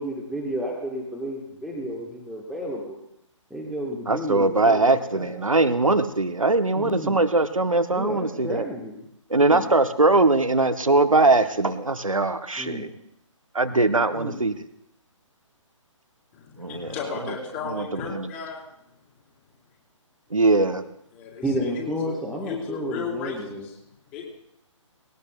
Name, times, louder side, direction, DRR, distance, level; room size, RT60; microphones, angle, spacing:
voice 1, 0.0-3.0 3.5-5.3 6.7-7.2 7.9-9.0 9.3-9.6 12.6-12.9 13.7-14.4 21.4-23.7, equal, ahead, -3 dB, 1.3 m, -32 dB
voice 2, 4.1-8.7 9.3-12.9 13.5-14.6 16.6-16.9 17.2-17.3 17.6-18.3 20.3-20.8, right 2 dB, 85° right, 11 dB, 1.0 m, -21 dB
voice 3, 16.3-18.6 21.1-22.2 22.5-23.8 24.1-24.3, left 5 dB, 25° left, -1 dB, 3.8 m, -34 dB
19.5 x 17.5 x 2.3 m, 0.78 s
figure-of-eight pair, 135°, 17 cm